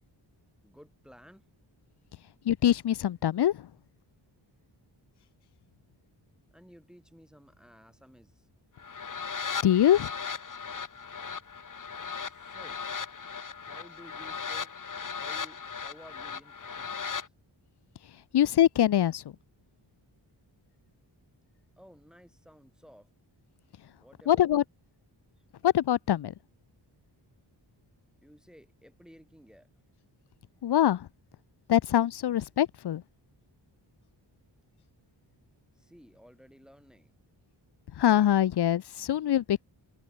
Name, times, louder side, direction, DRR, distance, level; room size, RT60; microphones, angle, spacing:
voice 1, 0.6-1.5 6.5-8.5 12.2-12.8 13.6-14.7 15.1-17.3 21.8-23.1 24.0-24.5 28.2-29.7 35.7-37.1, equal, ahead, 5.5 m, -55 dB
voice 2, 2.5-3.7 9.6-10.1 18.3-19.2 24.3-24.6 25.6-26.3 30.6-31.1 31.7-33.0 38.0-39.6, left 11 dB, 60° left, 0.6 m, -24 dB
sound 1, 8.8-17.3, left 6 dB, 40° left, 1.5 m, -37 dB
wide cardioid pair, 140°, 46 cm